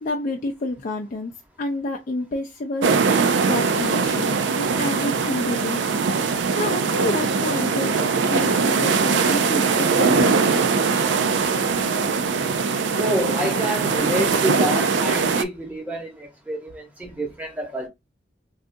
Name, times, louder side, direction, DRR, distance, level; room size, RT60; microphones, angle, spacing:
voice 1, 0.0-2.9 3.4-5.8 6.5-10.7, left 2 dB, 50° left, 0.4 m, -29 dB
sound 1, 2.8-15.4, right 5 dB, 90° right, 0.4 m, -21 dB
voice 2, 13.0-17.9, equal, 10° right, 1.0 m, -28 dB
3.6 x 2.4 x 2.6 m
head